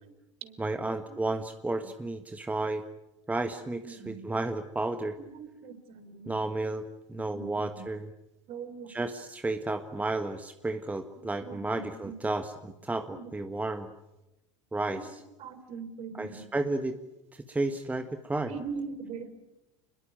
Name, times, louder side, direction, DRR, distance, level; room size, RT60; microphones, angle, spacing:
voice 1, 0.6-2.8 3.3-5.2 6.3-8.1 8.9-13.9 14.7-15.2 16.1-17.0 17.3-18.5, right 2 dB, 10° right, 8 dB, 1.6 m, -32 dB
voice 2, 3.8-4.3 5.2-6.3 7.3-7.5 7.7-7.8 8.5-8.9 11.4-11.8 13.1-13.3 14.9-15.1 15.4-16.5 18.5-19.4, right 5 dB, 45° right, 10 dB, 3.9 m, -41 dB
30.0 x 21.5 x 9.0 m, 0.96 s
figure-of-eight pair, 75°, 15 cm